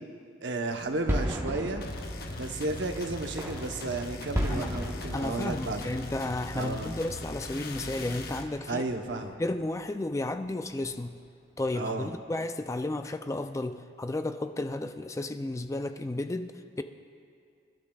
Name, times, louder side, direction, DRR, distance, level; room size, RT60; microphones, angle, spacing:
voice 1, 0.4-1.8 2.4-5.9 6.5-6.9 8.7-9.4 11.7-12.1, right 2 dB, 70° right, 4 dB, 1.0 m, -33 dB
sound 1, 0.7-8.6 8.9-9.4 9.8-9.9 10.2-10.3 10.8-11.2, equal, 15° right, 1.1 m, -36 dB
sound 2, 1.8-8.5, left 2 dB, 55° left, 1.0 m, -40 dB
voice 2, 5.1-8.8 9.4-11.2 11.6-16.8, left 2 dB, 15° left, 8 dB, 0.3 m, -33 dB
28.5 x 12.0 x 2.3 m, 2.3 s
head